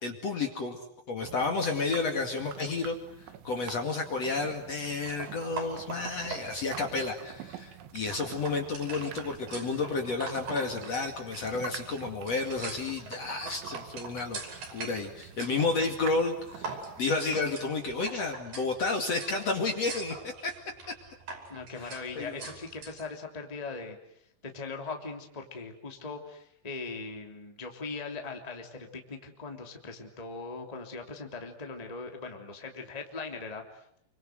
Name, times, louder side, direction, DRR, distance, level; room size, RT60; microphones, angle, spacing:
voice 1, 0.0-0.8 1.1-3.0 3.4-14.4 14.7-20.5 21.8-22.4, left 3 dB, 45° left, 3 dB, 2.8 m, -31 dB
sound 1, 1.2-17.5, right 10 dB, 80° right, 4.0 m, -47 dB
sound 2, 5.0-23.1, right 4 dB, 50° right, 6.8 m, -44 dB
voice 2, 21.5-24.0 24.4-34.0, left 4 dB, 10° left, 3 dB, 2.4 m, -40 dB
29.5 x 25.0 x 7.9 m, 0.69 s
omnidirectional pair, 5.2 m